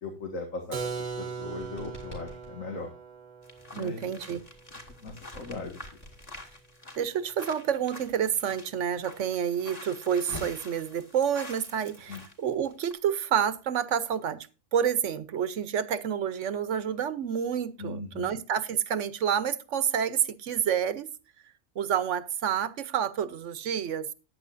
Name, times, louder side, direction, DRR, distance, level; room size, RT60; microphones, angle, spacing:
voice 1, 0.0-2.9 3.7-4.2 5.0-5.8 12.1-12.2 17.8-18.3, left 3 dB, 75° left, 3 dB, 2.2 m, -38 dB
Keyboard (musical), 0.7-6.3, right 5 dB, 40° right, 1.0 m, -40 dB
sound 1, 1.1-2.5 4.4-6.9, equal, 50° left, 6.9 m, -49 dB
sound 2, 3.4-12.3 12.7-12.9, left 2 dB, 30° left, 2.2 m, -46 dB
voice 2, 3.8-4.4 7.0-21.1 21.8-24.1, right 8 dB, 65° right, 15 dB, 1.1 m, -29 dB
14.0 x 10.0 x 2.6 m, 0.31 s
omnidirectional pair, 1.4 m